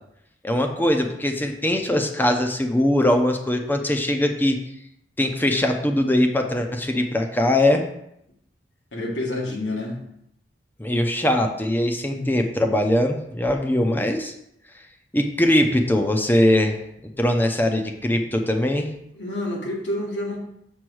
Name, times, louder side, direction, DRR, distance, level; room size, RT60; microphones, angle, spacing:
voice 1, 0.4-4.6 5.2-7.8 10.8-14.3 15.1-16.8 17.2-18.9, left 1 dB, 10° left, 4 dB, 0.7 m, -21 dB
voice 2, 8.9-10.0 12.1-12.4 19.1-20.4, left 1 dB, 85° left, -1 dB, 1.8 m, -28 dB
6.3 x 4.0 x 6.3 m, 0.77 s
head